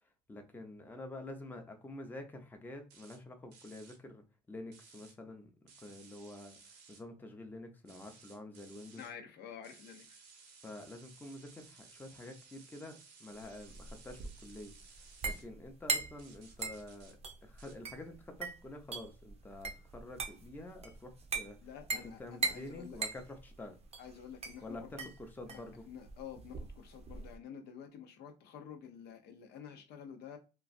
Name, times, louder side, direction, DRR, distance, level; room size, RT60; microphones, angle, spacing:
voice 1, 0.3-9.1 10.6-14.7 15.2-23.8 24.6-25.9, left 2 dB, 10° left, 4 dB, 0.6 m, -48 dB
sound 1, 2.9-3.2 3.5-4.0 4.7-5.1 5.7-7.0 7.8-9.1 9.6-15.4 16.2-17.1 17.6-17.8, right 5 dB, 75° right, 0.9 m, -58 dB
voice 2, 9.0-10.2 21.6-23.0 24.0-25.1 25.9-30.4, left 8 dB, 75° left, 6 dB, 0.6 m, -49 dB
sound 2, 13.4-27.4, right 4 dB, 40° right, 0.6 m, -41 dB
3.0 x 2.3 x 2.5 m, 0.31 s
cardioid pair, 110°, 17 cm